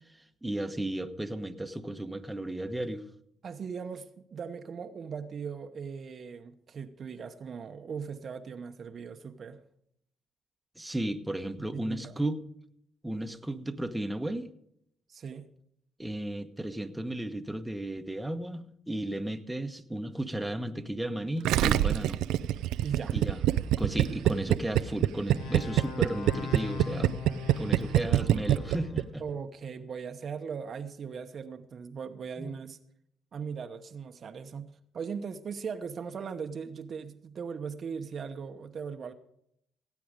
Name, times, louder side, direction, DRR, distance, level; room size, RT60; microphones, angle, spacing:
voice 1, 0.4-3.1 10.8-12.4 13.0-14.5 16.0-22.2 23.1-23.4 23.8-27.2 27.6-29.2 32.4-32.5, right 1 dB, 10° right, 6 dB, 1.1 m, -34 dB
voice 2, 3.4-9.6 11.6-12.2 15.1-15.5 22.8-23.2 24.1-24.2 29.2-32.8 33.3-39.1, right 6 dB, 50° right, 7 dB, 1.0 m, -39 dB
Gurgling, 21.4-29.0 29.3-29.4, right 13 dB, 80° right, 0.4 m, -25 dB
sound 1, 25.3-28.9, left 6 dB, 80° left, 1.2 m, -40 dB
16.5 x 8.6 x 5.1 m, 0.74 s
supercardioid pair, 65°, 0 cm